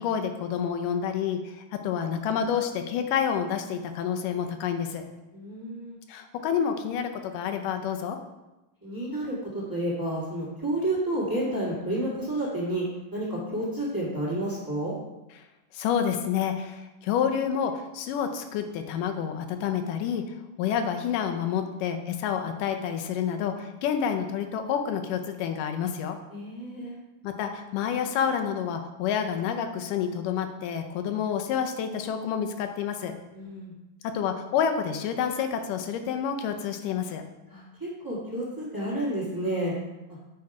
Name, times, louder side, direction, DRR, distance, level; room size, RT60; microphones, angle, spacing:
voice 1, 0.0-5.0 6.1-8.2 15.7-20.2 20.6-26.2 27.2-33.1 34.1-37.2, left 8 dB, 75° left, 6 dB, 2.2 m, -28 dB
voice 2, 5.3-6.0 8.8-12.8 13.1-15.0 26.3-27.0 33.3-33.7 37.5-39.7, right 1 dB, 15° right, -7 dB, 0.8 m, -30 dB
8.7 x 4.8 x 4.8 m, 1.0 s
omnidirectional pair, 4.0 m